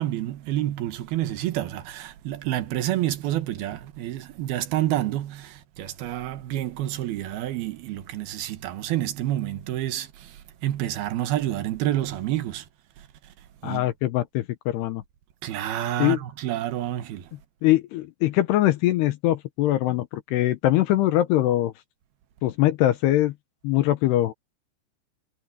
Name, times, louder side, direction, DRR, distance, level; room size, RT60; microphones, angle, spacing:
voice 1, 0.0-10.4 10.6-12.7 13.6-13.9 15.4-17.3, right 13 dB, 65° right, 2.9 m, -28 dB
voice 2, 13.6-15.0 16.0-16.2 17.6-21.7 22.4-23.3 23.6-24.3, left 14 dB, 80° left, 2.6 m, -22 dB
omnidirectional pair, 5.4 m